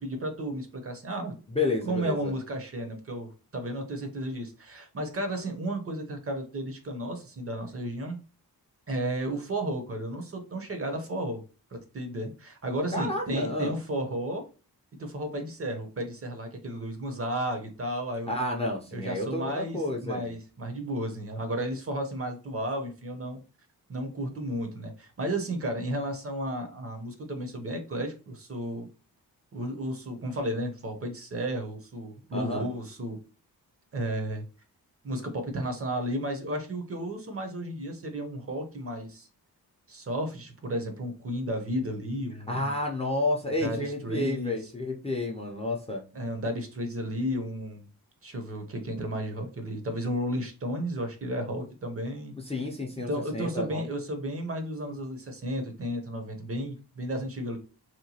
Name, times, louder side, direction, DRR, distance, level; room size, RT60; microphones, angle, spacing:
voice 1, 0.0-1.3 1.8-8.2 8.9-11.4 11.7-14.4 15.0-18.4 18.9-23.4 23.9-28.9 29.5-33.2 33.9-34.5 35.0-39.3 39.9-42.7 43.6-44.5 46.1-47.8 48.2-52.3 53.1-57.6, right 1 dB, 35° right, 5 dB, 0.6 m, -33 dB
voice 2, 1.5-2.3 12.9-13.7 18.3-20.3 32.3-32.7 42.5-46.0 52.4-53.8, left 2 dB, 15° left, 0 dB, 0.4 m, -30 dB
2.9 x 2.2 x 2.7 m, 0.34 s
wide cardioid pair, 110°, 37 cm